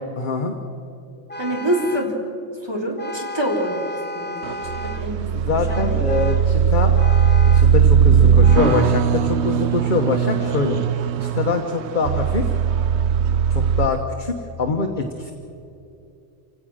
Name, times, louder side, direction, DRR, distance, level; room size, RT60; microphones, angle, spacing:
voice 1, 0.2-0.5 5.5-6.9 7.5-10.8 11.2-12.5 13.5-15.3, left 4 dB, 45° left, 3 dB, 1.3 m, -24 dB
Vehicle horn car horn honking, 1.3-2.2 3.0-5.2 5.7-6.5 7.0-7.8 8.4-9.0, left 1 dB, 15° left, 0.4 m, -33 dB
voice 2, 1.4-2.2 2.6-6.3, right 1 dB, 20° right, -1 dB, 3.5 m, -26 dB
sound 1, 4.4-13.9, right 7 dB, 70° right, 0.9 m, -18 dB
27.5 x 17.0 x 6.4 m, 2.7 s
omnidirectional pair, 1.2 m